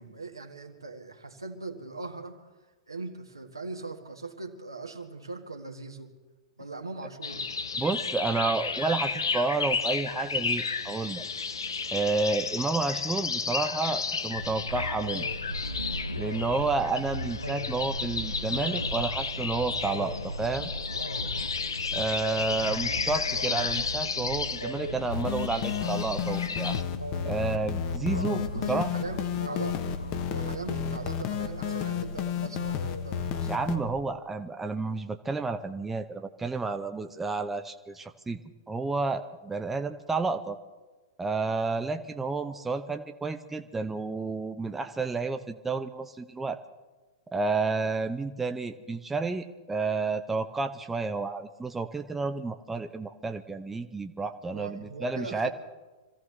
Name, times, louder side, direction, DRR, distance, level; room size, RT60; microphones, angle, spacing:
voice 1, 0.0-2.4 2.9-6.1 6.6-7.5 22.5-22.7 28.5-29.7 30.3-33.5 54.5-55.5, right 3 dB, 85° right, 3 dB, 1.8 m, -40 dB
sound 1, 7.2-26.8, left 5 dB, 75° left, 0.8 m, -33 dB
voice 2, 7.8-11.2 11.9-15.3 16.2-20.7 21.9-26.8 27.2-28.9 33.4-38.4 38.7-40.6 41.2-46.6 47.3-55.5, right 3 dB, 10° right, 7 dB, 0.7 m, -30 dB
sound 2, 14.3-34.0, equal, 90° left, 1.1 m, -37 dB
sound 3, 25.1-33.8, left 10 dB, 40° left, 1.1 m, -32 dB
26.0 x 15.5 x 3.4 m, 1.2 s
figure-of-eight pair, 100°, 2 cm